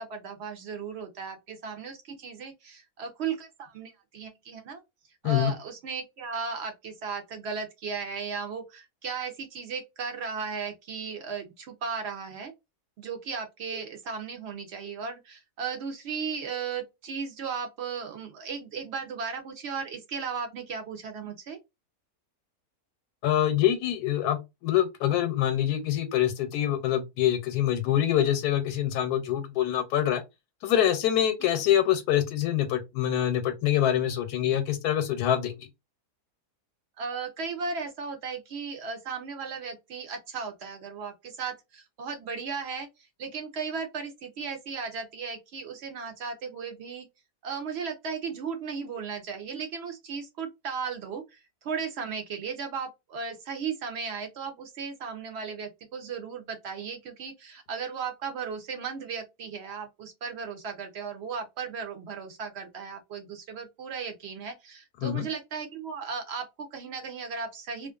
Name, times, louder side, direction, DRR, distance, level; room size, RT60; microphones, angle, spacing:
voice 1, 0.0-4.8 5.2-12.5 13.0-21.6 31.4-31.5 37.0-42.9 43.2-47.1 47.4-67.9, right 5 dB, 65° right, 0.6 m, -36 dB
voice 2, 23.2-30.2 30.6-35.7 65.0-65.3, left 11 dB, 85° left, 1.1 m, -25 dB
2.4 x 2.4 x 2.3 m
omnidirectional pair, 1.6 m